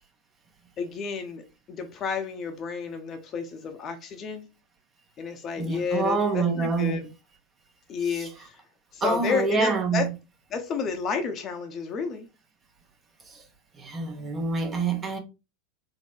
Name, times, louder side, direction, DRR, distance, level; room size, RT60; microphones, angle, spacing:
voice 1, 0.8-1.4 1.7-4.5 5.2-7.0 7.9-8.6 8.9-10.1 10.5-12.3, left 5 dB, 35° left, 0.7 m, -31 dB
voice 2, 5.6-7.0 8.1-8.3 9.0-10.1 13.3-13.4 13.8-15.2, right 4 dB, 25° right, 0.9 m, -26 dB
3.8 x 2.1 x 4.3 m
figure-of-eight pair, 85°, 0 cm